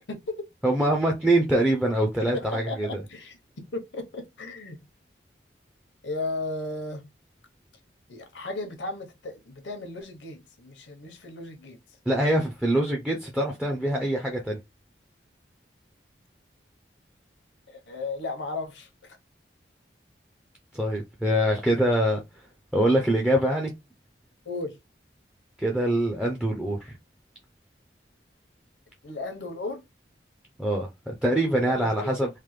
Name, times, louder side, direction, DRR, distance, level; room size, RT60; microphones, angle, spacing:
voice 1, 0.1-0.5 2.3-4.8 6.0-7.0 8.1-11.8 17.7-19.2 24.4-24.8 29.0-29.8 31.7-32.2, left 2 dB, 80° left, 0.8 m, -35 dB
voice 2, 0.6-2.9 12.1-14.6 20.7-22.4 22.7-23.7 25.6-27.0 30.6-32.3, right 1 dB, 5° right, 0.4 m, -24 dB
3.2 x 2.1 x 3.0 m
head